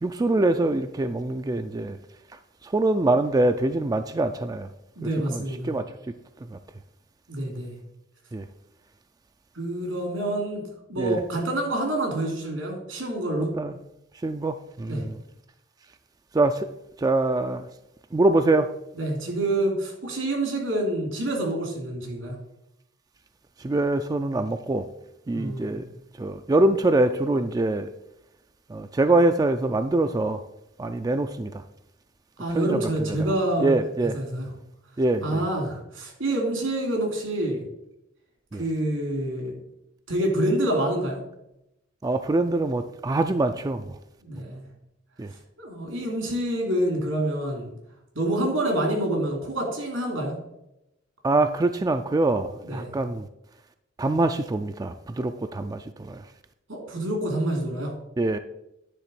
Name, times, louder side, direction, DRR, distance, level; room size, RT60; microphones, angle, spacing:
voice 1, 0.0-2.0 2.6-4.7 5.3-5.9 6.5-6.6 8.3-8.5 11.0-11.2 13.4-13.7 14.2-15.2 16.3-16.7 17.0-17.7 18.1-18.7 23.6-24.9 25.3-25.9 26.2-27.9 28.7-30.4 30.8-31.6 32.5-32.8 33.6-34.2 35.0-35.4 38.5-38.6 42.0-43.8 45.2-45.3 51.2-53.3 54.0-56.2 58.2-58.4, right 2 dB, 20° right, 0.3 m, -24 dB
voice 2, 5.0-5.8 7.3-7.7 9.5-10.6 10.9-13.5 14.9-15.0 18.9-22.4 25.3-25.8 32.4-33.7 34.0-34.5 35.2-37.6 38.5-39.6 40.1-41.2 44.2-44.7 45.6-47.7 48.1-50.4 52.6-52.9 56.7-57.9, right 1 dB, 85° right, 2.9 m, -27 dB
10.0 x 3.5 x 6.8 m
head